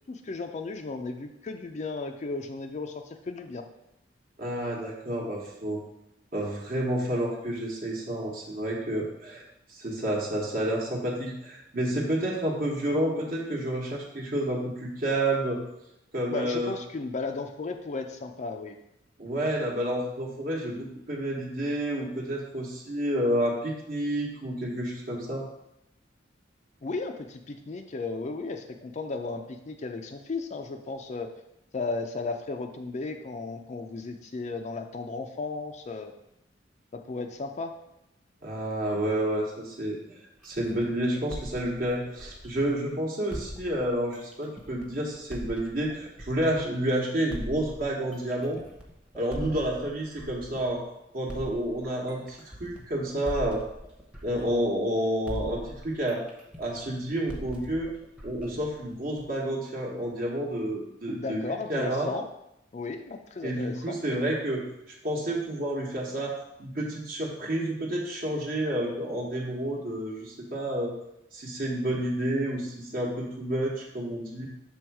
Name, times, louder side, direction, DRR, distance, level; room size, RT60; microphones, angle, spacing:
voice 1, 0.1-3.6 16.3-18.7 26.8-31.3 31.7-36.1 37.1-37.7 61.1-62.3 62.7-64.2, left 3 dB, 40° left, 5 dB, 0.4 m, -35 dB
voice 2, 4.4-5.8 6.3-9.4 9.7-15.6 16.1-16.7 19.2-25.5 38.4-40.0 40.4-48.6 49.1-50.8 51.1-53.6 54.2-56.2 56.6-57.9 58.2-61.4 61.7-62.1 63.4-64.7 65.0-70.9 71.3-74.5, right 1 dB, 50° right, -2 dB, 1.1 m, -30 dB
sound 1, 40.4-42.9 43.3-46.8 47.3-50.8 51.3-55.0 55.3-59.4, equal, 5° right, 0.8 m, -42 dB
6.2 x 3.5 x 4.6 m, 0.84 s
head